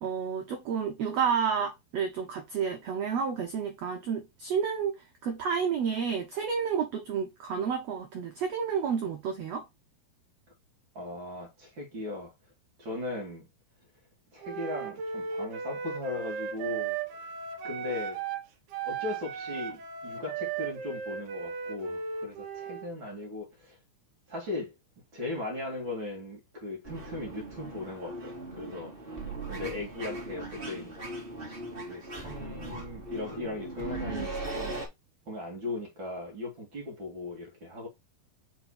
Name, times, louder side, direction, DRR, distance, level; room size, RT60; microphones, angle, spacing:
voice 1, 0.0-4.9 5.2-9.6, right 6 dB, 85° right, 1.4 m, -30 dB
voice 2, 10.9-12.3 12.8-13.5 14.3-17.0 17.6-18.2 18.8-23.8 24.3-24.8 25.1-28.9 29.5-30.9 31.5-31.6 31.8-34.8 35.3-37.9, left 2 dB, 35° right, 2.5 m, -38 dB
Wind instrument woodwind instrument, 14.4-18.5 18.7-22.9, right 6 dB, 65° right, 2.3 m, -36 dB
sound 1, 26.8-34.9, right 2 dB, 20° right, 1.6 m, -39 dB
5.8 x 4.3 x 4.2 m
omnidirectional pair, 4.4 m